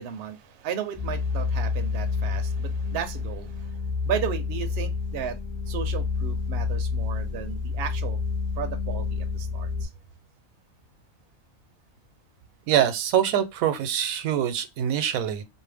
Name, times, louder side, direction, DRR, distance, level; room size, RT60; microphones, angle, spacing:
voice 1, 0.0-3.7 4.0-5.4 5.7-8.2 8.6-9.9, right 8 dB, 65° right, 0.6 m, -34 dB
sound 1, 1.0-9.9, left 4 dB, 25° left, 0.3 m, -29 dB
voice 2, 12.7-15.4, right 10 dB, 85° right, 1.0 m, -24 dB
2.5 x 2.1 x 3.3 m
omnidirectional pair, 1.4 m